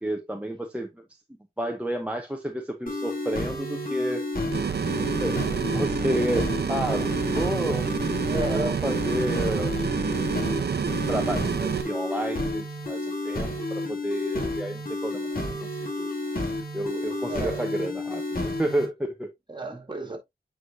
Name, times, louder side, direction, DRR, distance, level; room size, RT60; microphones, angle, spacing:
voice 1, 0.0-1.0 1.6-4.3 4.6-4.7 5.2-7.9 8.5-9.7 11.1-15.3 15.8-16.1 16.7-19.3, equal, 10° right, 0.9 m, -30 dB
sound 1, 2.9-18.9, left 1 dB, 60° left, 2.3 m, -31 dB
sound 2, 4.5-11.8, right 6 dB, 85° right, 0.7 m, -28 dB
voice 2, 8.3-8.8 9.1-9.8 16.1-16.5 17.3-17.7 19.5-20.2, right 1 dB, 30° right, 2.2 m, -34 dB
8.9 x 4.8 x 2.6 m
wide cardioid pair, 115°, 17 cm